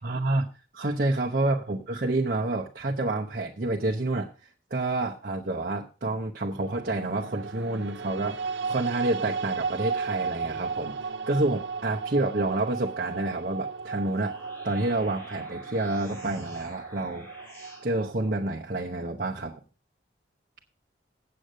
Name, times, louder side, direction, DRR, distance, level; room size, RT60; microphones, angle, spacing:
voice 1, 0.0-0.4 0.7-4.3 4.7-8.4 8.7-17.3 17.8-19.6, right 2 dB, 45° right, -1 dB, 0.9 m, -28 dB
sound 1, 6.6-18.8, right 5 dB, 65° right, 0.6 m, -35 dB
sound 2, 14.0-17.9, equal, 10° left, 5.1 m, -48 dB
8.5 x 7.8 x 6.4 m, 0.35 s
head